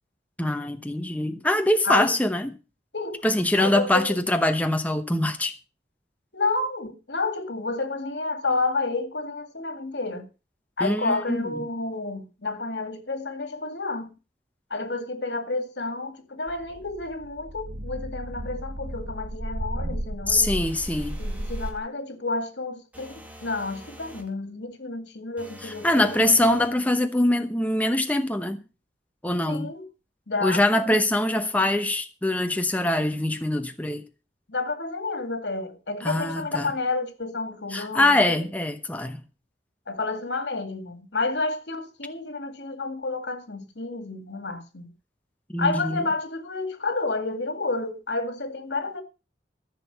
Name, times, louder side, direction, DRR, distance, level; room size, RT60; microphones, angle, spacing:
voice 1, 0.4-2.5 3.2-5.5 10.8-11.4 20.3-21.2 25.6-28.6 29.2-29.7 30.4-34.0 36.0-36.7 37.7-39.2 45.5-46.1, left 1 dB, 10° left, 0.9 m, -23 dB
voice 2, 3.6-4.2 6.3-10.3 10.8-14.1 14.7-20.5 21.2-26.2 29.5-29.9 30.3-30.9 34.5-38.4 39.9-44.9 45.6-49.0, left 3 dB, 80° left, 2.2 m, -30 dB
sound 1, 16.5-21.8, right 1 dB, 70° right, 1.6 m, -34 dB
sound 2, 20.5-21.8 22.9-24.3 25.4-26.8, equal, 10° right, 1.9 m, -46 dB
14.5 x 6.3 x 6.8 m
head